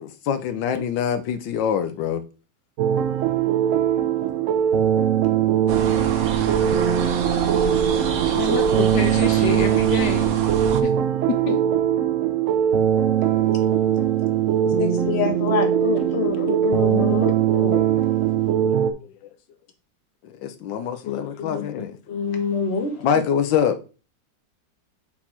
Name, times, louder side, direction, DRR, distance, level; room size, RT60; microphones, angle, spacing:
voice 1, 0.2-2.2 9.1-9.7 18.3-19.0 19.2-19.3 20.2-22.0 23.0-23.9, left 8 dB, 85° left, 1.4 m, -25 dB
sound 1, 2.8-18.9, right 10 dB, 85° right, 0.7 m, -21 dB
sound 2, 5.7-10.8, right 5 dB, 60° right, 1.1 m, -28 dB
voice 2, 8.3-10.4 10.8-10.9 11.3-11.6, left 7 dB, 70° left, 1.3 m, -27 dB
voice 3, 14.6-18.0 21.0-21.6 22.1-23.2, left 6 dB, 40° left, 1.3 m, -27 dB
5.7 x 4.3 x 4.4 m
omnidirectional pair, 2.0 m